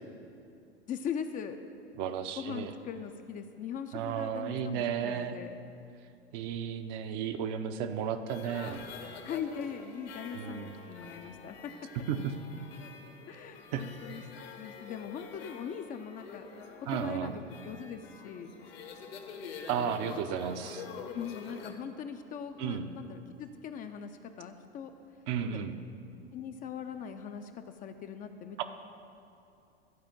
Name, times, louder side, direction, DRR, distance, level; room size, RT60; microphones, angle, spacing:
voice 1, 0.9-1.6 2.3-5.5 9.2-11.6 13.3-14.2 14.6-16.5 16.8-18.5 19.8-20.2 21.1-24.9 25.4-25.6 26.3-28.6, left 7 dB, 25° left, 7 dB, 0.5 m, -40 dB
voice 2, 2.0-2.7 3.9-5.4 6.3-8.8 10.3-10.7 12.1-12.4 13.7-13.8 16.9-17.3 19.7-20.9 22.6-22.9 25.3-25.8 28.6-28.7, right 8 dB, 45° right, 8 dB, 0.7 m, -33 dB
sound 1, 8.3-21.7, left 5 dB, 65° left, 1.2 m, -47 dB
12.5 x 5.0 x 7.3 m, 2.5 s
figure-of-eight pair, 80°, 33 cm